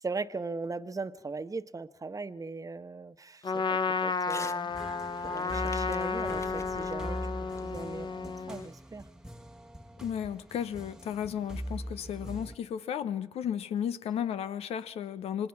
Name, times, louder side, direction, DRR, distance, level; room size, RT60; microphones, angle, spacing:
voice 1, 0.0-4.7 5.2-7.2 7.6-9.0, right 3 dB, 35° right, 11 dB, 1.1 m, -39 dB
Trumpet, 3.4-8.7, left 5 dB, 50° left, 0.8 m, -32 dB
Crumpling crinkling / Tearing, 4.2-4.6 5.0-8.3, left 2 dB, 30° left, 1.1 m, -48 dB
sound 1, 4.7-12.6, equal, 5° right, 1.1 m, -42 dB
voice 2, 10.0-15.5, left 9 dB, 85° left, 13 dB, 0.8 m, -34 dB
27.0 x 19.5 x 6.0 m, 0.86 s
supercardioid pair, 45°, 10 cm